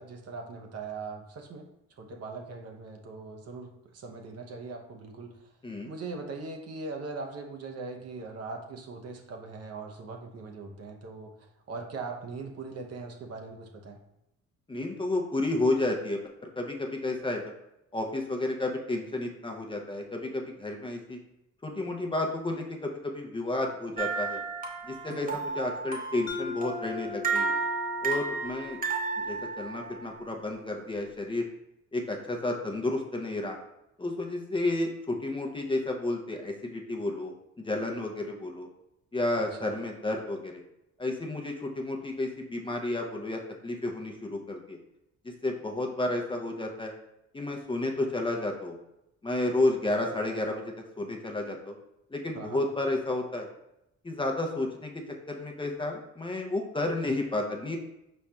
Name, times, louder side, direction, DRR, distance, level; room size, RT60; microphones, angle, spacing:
voice 1, 0.0-1.7 2.0-5.3 5.8-14.0 25.1-25.4 39.4-39.7 52.3-52.6, right 4 dB, 55° right, 3 dB, 0.7 m, -40 dB
voice 2, 14.7-17.4 17.9-21.2 21.6-24.4 24.8-27.6 28.0-28.8 29.3-31.4 31.9-33.6 34.0-38.7 39.1-40.6 41.0-44.8 45.2-46.9 47.3-48.7 49.2-51.7 52.1-53.5 54.0-57.8, left 2 dB, 15° left, 2 dB, 0.6 m, -31 dB
sound 1, 24.0-30.2, right 5 dB, 30° right, 0.8 m, -33 dB
Mallet percussion, 26.3-30.8, left 7 dB, 60° left, 0.6 m, -41 dB
4.7 x 4.2 x 2.3 m, 0.87 s
cardioid pair, 90°, 30 cm